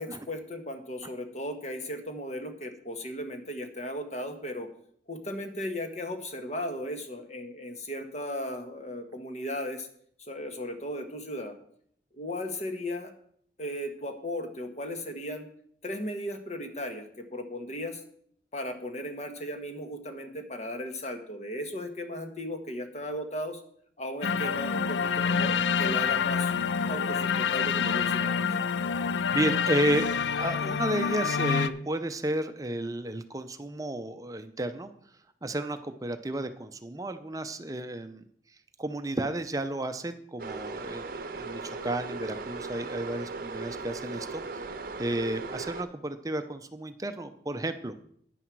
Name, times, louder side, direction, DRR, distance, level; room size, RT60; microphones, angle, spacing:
voice 1, 0.0-4.7 5.1-9.9 10.2-11.5 12.1-13.1 13.6-15.5 15.8-18.0 18.5-23.6 24.0-26.5 26.9-28.4, left 1 dB, 40° left, 6 dB, 1.4 m, -36 dB
sound 1, 24.2-31.7, left 6 dB, 85° left, 0.4 m, -27 dB
voice 2, 28.9-30.1 30.4-34.9 35.4-38.2 38.8-44.7 45.0-47.9, right 1 dB, 20° right, 9 dB, 0.6 m, -32 dB
sound 2, 40.4-45.8, right 3 dB, 55° right, 0.8 m, -38 dB
10.0 x 9.9 x 4.7 m, 0.63 s
head